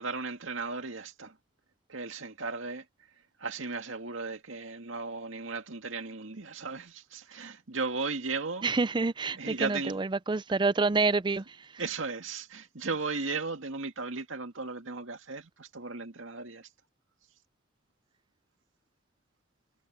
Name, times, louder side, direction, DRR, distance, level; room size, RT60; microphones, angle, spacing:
voice 1, 0.0-1.4 1.9-2.8 3.4-8.7 9.4-9.9 11.8-16.7, right 4 dB, 80° right, 2.1 m, -36 dB
voice 2, 8.6-11.8, right 3 dB, 25° right, 0.5 m, -28 dB
head